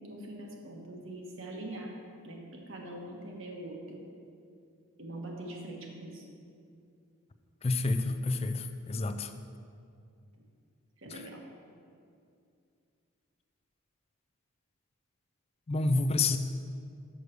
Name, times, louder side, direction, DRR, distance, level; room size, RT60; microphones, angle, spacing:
voice 1, 0.0-1.9 2.2-4.0 5.0-6.2 11.0-11.4, right 1 dB, 60° right, 0 dB, 1.3 m, -43 dB
voice 2, 7.6-9.3 11.1-11.2 15.7-16.4, left 3 dB, 25° left, 9 dB, 0.3 m, -29 dB
6.4 x 6.3 x 6.8 m, 2.4 s
head